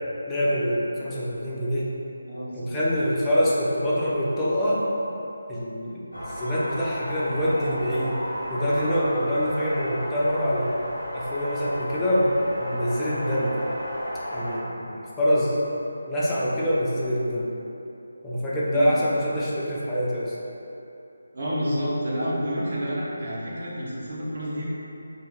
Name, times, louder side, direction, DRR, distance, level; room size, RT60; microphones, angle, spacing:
voice 1, 0.3-1.9 2.5-4.9 5.5-8.2 8.5-10.8 11.1-13.6 14.3-15.6 16.1-17.5 18.2-20.3, equal, 10° left, -8 dB, 0.4 m, -25 dB
voice 2, 2.3-2.7 18.7-18.9 21.3-24.7, equal, 45° right, -7 dB, 0.7 m, -29 dB
sound 1, 6.1-14.6, equal, 85° left, 0.8 m, -33 dB
2.7 x 2.5 x 3.5 m, 2.9 s
figure-of-eight pair, 155°, 0 cm